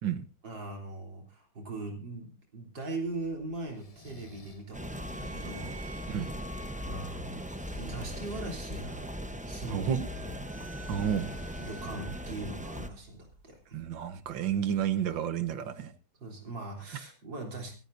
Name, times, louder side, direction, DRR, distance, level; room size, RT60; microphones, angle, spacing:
voice 1, 0.4-5.9 6.9-7.4 7.7-9.1 9.5-10.3 11.0-11.1 11.6-13.8 16.2-17.8, right 2 dB, 75° right, 2 dB, 4.3 m, -40 dB
sound 1, 3.0-15.2, right 1 dB, 55° right, 3.7 m, -52 dB
Breathing, 3.7-4.7 7.4-8.4 10.8-12.2, left 1 dB, 20° left, 1.1 m, -51 dB
sound 2, 4.7-12.9, equal, 10° right, 0.3 m, -39 dB
voice 2, 9.7-10.1 10.9-11.3 13.7-15.9, right 9 dB, 90° right, 12 dB, 1.9 m, -31 dB
24.0 x 13.5 x 2.7 m, 0.34 s
omnidirectional pair, 2.0 m